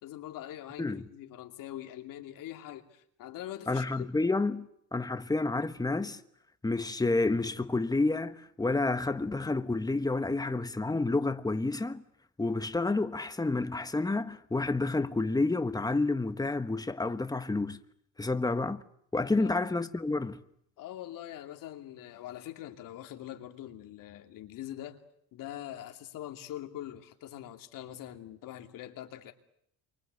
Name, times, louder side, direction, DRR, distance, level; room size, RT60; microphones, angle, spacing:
voice 1, 0.0-4.1 19.2-19.6 20.8-25.0 25.3-29.3, left 12 dB, 85° left, 2.7 m, -43 dB
voice 2, 3.7-6.2 6.6-12.0 12.4-17.8 18.2-18.8 19.1-20.4, left 3 dB, 10° left, 1.4 m, -29 dB
28.0 x 24.0 x 8.1 m
cardioid pair, 100°, 32 cm